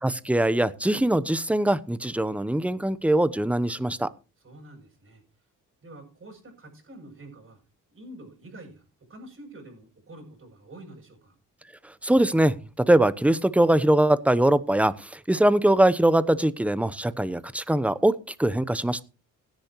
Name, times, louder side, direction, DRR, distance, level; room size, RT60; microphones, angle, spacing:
voice 1, 0.0-4.1 11.8-19.0, right 1 dB, 5° right, 16 dB, 0.9 m, -22 dB
voice 2, 4.4-5.2 5.8-7.6 7.9-11.4, right 1 dB, 40° right, 1 dB, 7.4 m, -47 dB
17.0 x 10.5 x 3.1 m, 0.32 s
cardioid pair, 80°, 32 cm